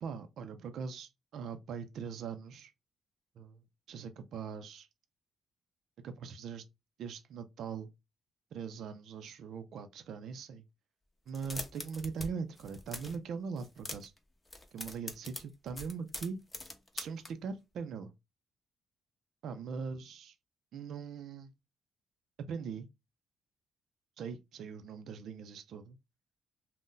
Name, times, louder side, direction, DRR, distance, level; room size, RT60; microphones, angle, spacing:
voice 1, 0.0-2.7 3.4-3.6 3.9-4.9 6.0-6.6 7.0-7.9 8.5-10.6 11.3-14.1 14.7-16.4 16.9-18.1 19.4-20.3 20.7-21.5 22.5-22.9 24.2-26.0, right 6 dB, 70° right, 0.4 m, -41 dB
sound 1, 11.3-12.3 12.5-13.2 13.6-14.2 14.5-17.3, left 2 dB, 20° left, 0.7 m, -43 dB
2.5 x 2.1 x 3.7 m
cardioid pair, 100°, 0 cm